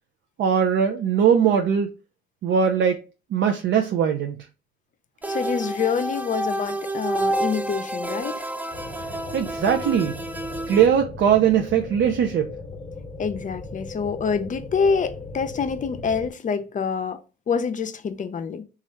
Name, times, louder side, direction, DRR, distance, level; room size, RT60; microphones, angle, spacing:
voice 1, 0.4-1.9 2.4-3.0 3.3-4.4 9.3-10.2 10.7-12.5, right 8 dB, 65° right, 0.5 m, -20 dB
sound 1, 5.2-10.9, right 1 dB, 10° right, 0.4 m, -29 dB
voice 2, 5.3-8.5 13.2-17.2 17.5-18.6, left 6 dB, 40° left, 0.5 m, -26 dB
sound 2, 8.7-16.3, left 3 dB, 20° left, 0.9 m, -38 dB
3.0 x 2.4 x 4.3 m
cardioid pair, 90°, 20 cm